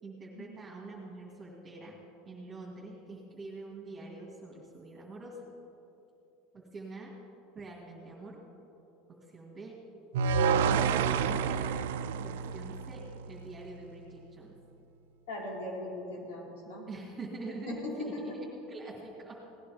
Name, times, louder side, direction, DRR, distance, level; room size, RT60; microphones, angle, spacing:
voice 1, 0.0-2.0 2.3-5.4 6.5-7.2 7.5-8.4 9.1-9.8 10.3-11.7 12.2-14.5 16.9-19.5, right 3 dB, 20° right, -4 dB, 2.4 m, -45 dB
sound 1, 10.1-13.3, right 6 dB, 90° right, 0.5 m, -28 dB
voice 2, 15.3-16.9 17.7-18.4, left 2 dB, 85° left, -2 dB, 3.8 m, -39 dB
17.5 x 10.5 x 5.1 m, 2.9 s
supercardioid pair, 120°, 0 cm